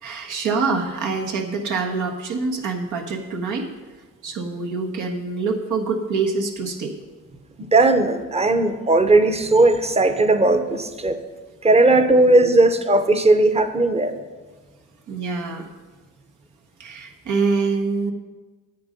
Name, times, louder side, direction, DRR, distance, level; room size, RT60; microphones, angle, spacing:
voice 1, 0.0-3.7 4.2-6.9 12.1-12.3 15.1-15.7 16.8-18.1, right 4 dB, 80° right, 2 dB, 1.5 m, -25 dB
voice 2, 7.6-11.2 11.6-14.2, right 2 dB, 20° right, 9 dB, 0.8 m, -17 dB
9.3 x 9.0 x 5.3 m, 1.3 s
cardioid pair, 90°, 30 cm